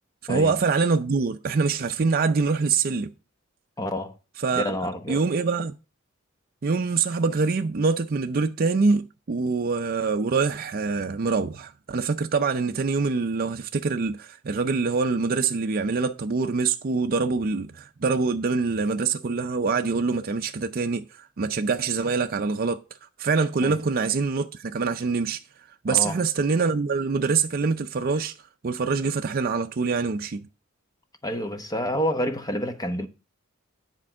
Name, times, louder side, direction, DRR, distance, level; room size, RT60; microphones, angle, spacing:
voice 1, 0.3-3.1 4.4-4.7 5.1-5.7 6.6-22.8 23.2-30.5, right 4 dB, 45° right, 0.5 m, -25 dB
voice 2, 3.8-4.1 4.5-5.2 23.6-23.8 25.9-26.1 31.2-33.1, equal, 20° left, 1.0 m, -28 dB
10.0 x 4.4 x 6.1 m
head